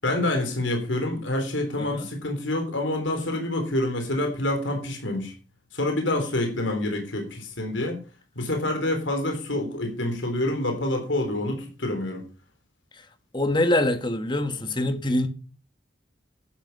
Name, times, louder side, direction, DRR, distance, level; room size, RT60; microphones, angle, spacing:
voice 1, 0.0-5.3 5.7-8.0 8.4-12.2, left 1 dB, 75° left, 3.6 m, -27 dB
voice 2, 13.3-15.3, left 1 dB, 25° left, 1.6 m, -24 dB
11.5 x 10.5 x 5.4 m
head